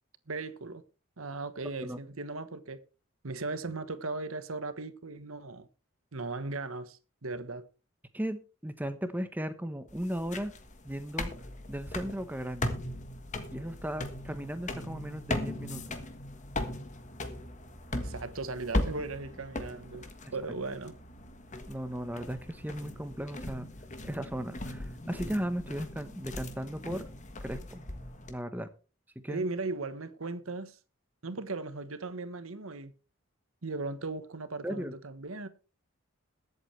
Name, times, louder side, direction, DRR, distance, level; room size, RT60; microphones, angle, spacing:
voice 1, 0.3-0.8 1.2-2.8 3.2-5.7 6.1-7.7 18.0-20.1 20.3-21.0 29.3-30.8 31.2-32.9 33.6-35.5, right 3 dB, 75° right, 1.2 m, -37 dB
voice 2, 8.1-10.5 10.8-11.3 11.7-12.8 13.5-15.8 21.7-23.7 24.0-27.1 27.4-27.8 28.3-28.7 29.2-29.4 34.6-34.9, equal, 10° right, 1.1 m, -36 dB
sound 1, 9.9-28.3, left 1 dB, 35° left, 1.5 m, -38 dB
22.0 x 8.1 x 3.3 m
head